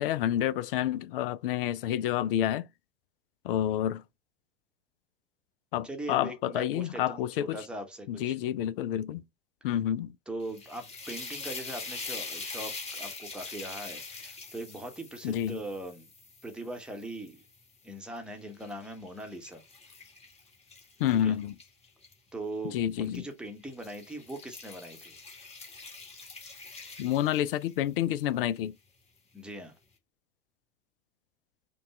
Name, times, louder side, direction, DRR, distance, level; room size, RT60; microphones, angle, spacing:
voice 1, 0.0-2.7 3.4-4.0 5.7-7.6 8.1-9.2 9.6-10.2 15.2-15.6 21.0-21.5 22.7-23.2 27.0-28.8, left 11 dB, 50° left, 0.4 m, -29 dB
voice 2, 5.8-7.2 7.5-8.4 10.3-16.1 16.4-17.4 17.8-19.6 21.2-21.4 22.3-25.1 29.3-29.8, right 1 dB, ahead, 1.0 m, -40 dB
sound 1, 10.4-17.6 18.2-22.1 23.0-23.3 23.7-27.9, left 3 dB, 15° left, 1.6 m, -43 dB
5.3 x 2.3 x 3.2 m
figure-of-eight pair, 80°, 37 cm